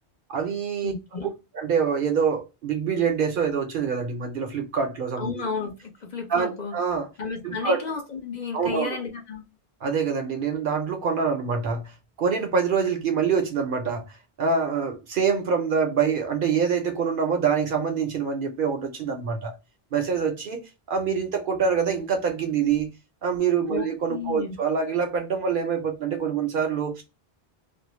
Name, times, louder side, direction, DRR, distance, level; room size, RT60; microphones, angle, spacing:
voice 1, 0.3-0.9 1.5-5.4 6.3-7.1 7.4-7.8 8.5-8.9 9.8-14.1 14.4-19.5 19.9-22.9 23.2-27.0, right 6 dB, 60° right, 0.6 m, -25 dB
voice 2, 0.8-1.3 5.2-6.8 7.2-9.4 23.7-24.5, left 5 dB, 50° left, 0.7 m, -33 dB
2.5 x 2.0 x 2.9 m
omnidirectional pair, 1.1 m